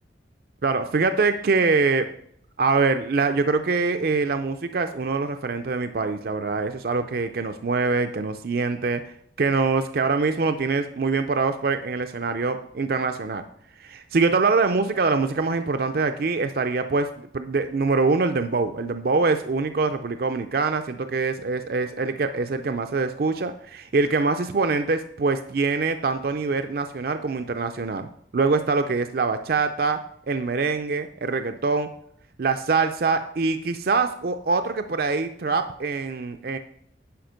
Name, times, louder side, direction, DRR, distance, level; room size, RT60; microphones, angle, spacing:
voice 1, 0.6-2.1 2.6-13.4 13.8-17.1 17.3-30.0 30.3-31.9 32.4-36.6, right 4 dB, 55° right, 7 dB, 0.5 m, -24 dB
10.5 x 5.2 x 5.1 m, 0.67 s
head